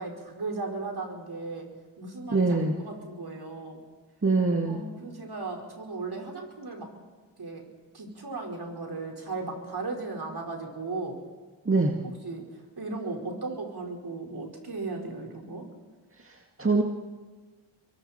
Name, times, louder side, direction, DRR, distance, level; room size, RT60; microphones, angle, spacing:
voice 1, 0.0-1.7 2.0-3.8 4.6-6.9 7.4-7.6 7.9-11.2 12.0-15.7, right 3 dB, 50° right, 1 dB, 4.9 m, -36 dB
voice 2, 2.3-2.7 4.2-4.8 11.7-11.9 16.2-16.8, right 3 dB, 25° right, 2 dB, 2.0 m, -24 dB
27.0 x 23.0 x 4.4 m, 1.4 s
cardioid pair, 45°, 48 cm